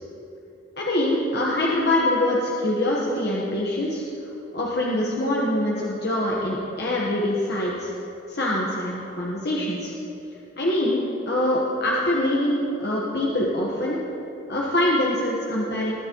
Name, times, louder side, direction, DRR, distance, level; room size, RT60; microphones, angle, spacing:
voice 1, 0.8-4.0 4.5-7.9 8.3-9.9 10.6-14.0 14.5-15.9, left 1 dB, 55° left, -4 dB, 1.3 m, -24 dB
21.0 x 9.7 x 3.1 m, 2.8 s
head